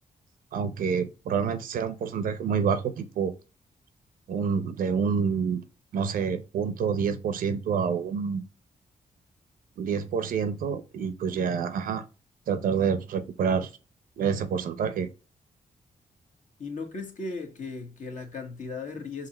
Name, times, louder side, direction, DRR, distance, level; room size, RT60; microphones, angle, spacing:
voice 1, 0.5-3.3 4.3-5.6 5.9-8.4 9.8-12.1 12.5-13.7 14.2-15.1, right 6 dB, 85° right, 0.7 m, -27 dB
voice 2, 16.6-19.3, left 3 dB, 60° left, 1.4 m, -36 dB
5.0 x 2.9 x 2.9 m
cardioid pair, 85°, 14 cm